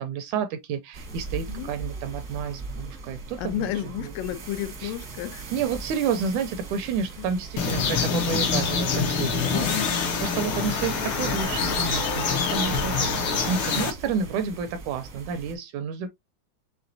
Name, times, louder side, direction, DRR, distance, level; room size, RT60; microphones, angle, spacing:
voice 1, 0.0-3.7 4.0-4.1 4.8-4.9 5.5-9.8 10.2-13.1 13.5-16.1, right 6 dB, 80° right, 1.8 m, -30 dB
sound 1, 0.9-15.5, right 4 dB, 60° right, 1.0 m, -39 dB
voice 2, 3.4-5.5 7.2-7.3 9.5-10.0, left 12 dB, 85° left, 2.5 m, -32 dB
sound 2, 7.6-13.9, left 5 dB, 70° left, 1.3 m, -26 dB
5.8 x 3.5 x 2.6 m
omnidirectional pair, 3.8 m